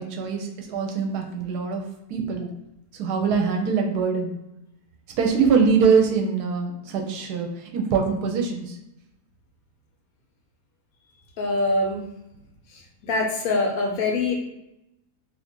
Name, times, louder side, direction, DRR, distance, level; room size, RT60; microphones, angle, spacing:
voice 1, 0.0-2.5 2.9-4.3 5.2-8.8, right 5 dB, 75° right, 2 dB, 1.0 m, -23 dB
voice 2, 11.4-12.0 13.1-14.4, left 2 dB, 70° left, 1 dB, 1.0 m, -23 dB
2.7 x 2.5 x 3.6 m, 0.88 s
omnidirectional pair, 1.8 m